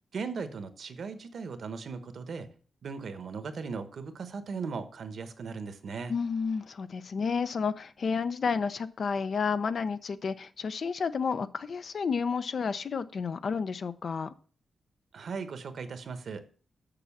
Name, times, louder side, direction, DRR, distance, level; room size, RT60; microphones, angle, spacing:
voice 1, 0.1-2.5 2.8-6.1 15.1-16.4, right 5 dB, 60° right, 1.1 m, -38 dB
voice 2, 6.1-14.3, left 5 dB, 55° left, 0.6 m, -31 dB
6.8 x 6.1 x 7.2 m
wide cardioid pair, 130°, 0 cm